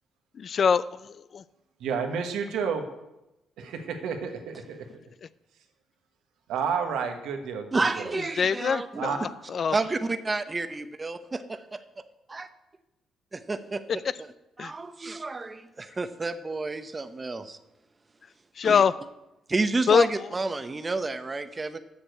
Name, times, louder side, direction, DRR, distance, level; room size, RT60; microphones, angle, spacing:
voice 1, 0.4-1.4 8.4-9.8 14.6-14.7 18.6-18.9 19.9-20.1, left 6 dB, 50° left, 17 dB, 0.4 m, -24 dB
voice 2, 1.8-2.8 3.6-4.9 6.5-8.1 8.9-9.2, right 6 dB, 85° right, 5 dB, 1.3 m, -30 dB
voice 3, 7.7-9.0 9.7-11.8 12.3-12.5 13.3-13.8 14.2-14.3 14.6-17.6 18.6-18.8 19.5-21.8, right 3 dB, 25° right, 11 dB, 0.7 m, -30 dB
7.2 x 6.7 x 7.9 m, 0.94 s
cardioid pair, 90°, 0 cm